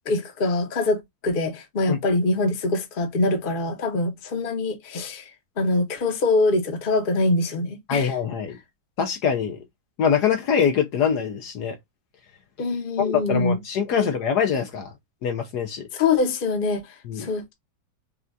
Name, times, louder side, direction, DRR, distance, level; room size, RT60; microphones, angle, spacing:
voice 1, 0.1-5.3 5.6-8.1 12.6-13.6 14.0-14.1 15.9-16.9 17.2-17.5, left 2 dB, 35° left, 1.0 m, -24 dB
voice 2, 7.9-8.6 9.0-9.6 10.0-11.8 13.0-14.9 15.2-15.9 17.1-17.3, left 7 dB, 65° left, 1.2 m, -24 dB
5.6 x 2.4 x 2.6 m
omnidirectional pair, 2.0 m